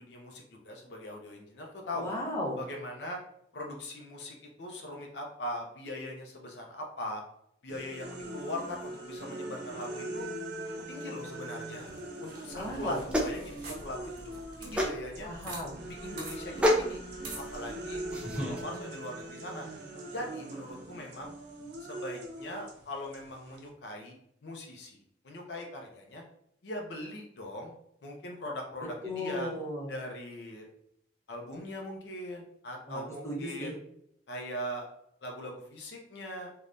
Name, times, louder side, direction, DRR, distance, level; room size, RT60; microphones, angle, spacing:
voice 1, 0.0-2.1 2.6-3.2 3.5-7.2 7.6-10.3 10.9-11.9 12.2-14.1 14.6-15.3 15.9-17.0 17.4-19.7 20.1-21.3 21.8-24.2 24.4-26.2 26.6-27.7 28.0-29.5 29.9-30.7 31.3-33.8 34.3-34.9 35.2-36.5, left 1 dB, 70° left, 1 dB, 0.6 m, -40 dB
voice 2, 1.9-2.6 12.5-13.0 15.2-15.8 29.0-29.9 32.9-33.7, left 1 dB, 15° left, -5 dB, 0.8 m, -36 dB
sound 1, 7.7-14.8 15.1-23.7, right 1 dB, 65° right, 0.5 m, -42 dB
sound 2, 11.7-15.6 15.9-16.0 16.2-16.4 17.2-17.5, right 3 dB, 50° right, 1.0 m, -46 dB
sound 3, 12.5-18.6, equal, 5° right, 0.4 m, -32 dB
3.3 x 2.2 x 2.5 m, 0.72 s
head